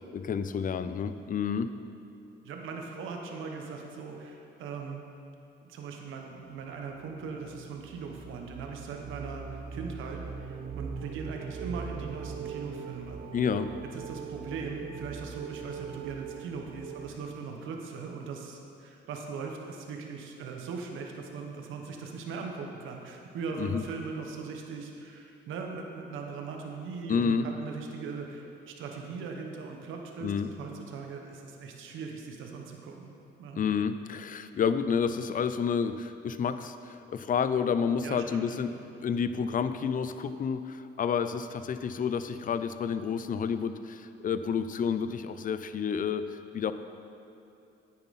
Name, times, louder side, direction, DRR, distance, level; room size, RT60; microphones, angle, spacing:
voice 1, 0.1-1.7 13.3-13.7 23.6-23.8 27.1-27.5 30.2-30.5 33.5-46.7, left 6 dB, 45° left, 11 dB, 0.5 m, -30 dB
voice 2, 2.4-5.0 5.6-13.2 13.8-33.1 33.4-33.7 38.0-38.5 38.7-38.8, right 5 dB, 85° right, 2 dB, 1.1 m, -40 dB
sound 1, 6.8-17.2, right 6 dB, 50° right, 0.6 m, -41 dB
9.6 x 8.9 x 4.1 m, 2.7 s
cardioid pair, 90°, 20 cm